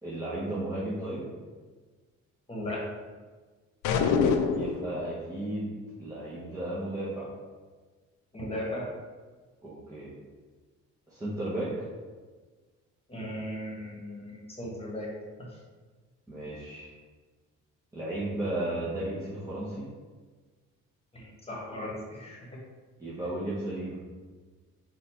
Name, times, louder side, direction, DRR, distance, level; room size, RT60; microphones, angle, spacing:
voice 1, 0.0-1.2 4.5-5.7 6.0-7.3 9.6-10.1 11.1-11.9 16.3-16.9 17.9-19.8 23.0-24.0, right 1 dB, 10° right, -10 dB, 1.1 m, -34 dB
voice 2, 2.5-2.8 8.3-8.9 13.1-15.1 21.1-22.4, left 1 dB, 20° left, -4 dB, 1.4 m, -37 dB
sound 1, 3.8-4.9, left 5 dB, 90° left, 0.5 m, -24 dB
4.1 x 2.7 x 4.4 m, 1.4 s
cardioid pair, 90°, 30 cm